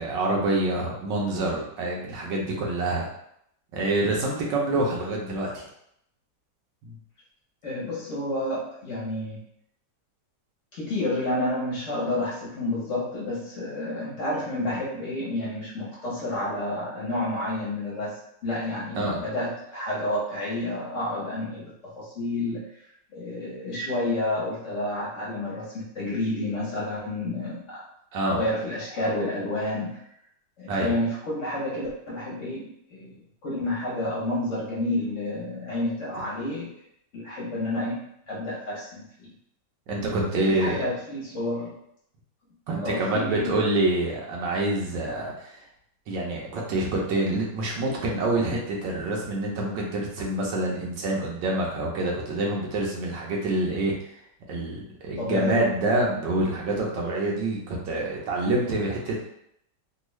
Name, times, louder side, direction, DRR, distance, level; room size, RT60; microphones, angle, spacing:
voice 1, 0.0-3.1 3.7-5.7 6.8-7.0 14.6-14.8 19.0-19.2 28.1-28.4 30.7-30.9 39.9-40.8 42.7-45.5 46.1-54.0 54.5-59.2, right 2 dB, 80° right, -2 dB, 1.5 m, -26 dB
voice 2, 7.6-9.4 10.7-22.6 23.1-27.9 28.3-30.0 30.6-33.2 33.4-36.7 37.1-39.3 40.2-41.7 42.8-43.5 55.2-56.0, left 1 dB, 50° left, -7 dB, 1.2 m, -30 dB
3.6 x 2.3 x 3.1 m, 0.73 s
omnidirectional pair, 1.9 m